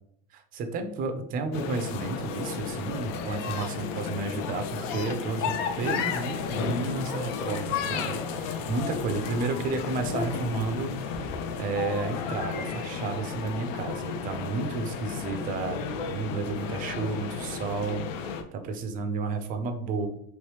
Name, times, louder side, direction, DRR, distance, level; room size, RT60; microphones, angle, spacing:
voice 1, 0.3-20.1, right 4 dB, 25° right, 6 dB, 0.4 m, -32 dB
sound 1, 1.5-18.4, left 6 dB, 80° left, 0.7 m, -33 dB
sound 2, 11.7-14.5, left 6 dB, 50° left, 0.9 m, -41 dB
3.1 x 3.0 x 3.2 m, 0.73 s
supercardioid pair, 145°, 37 cm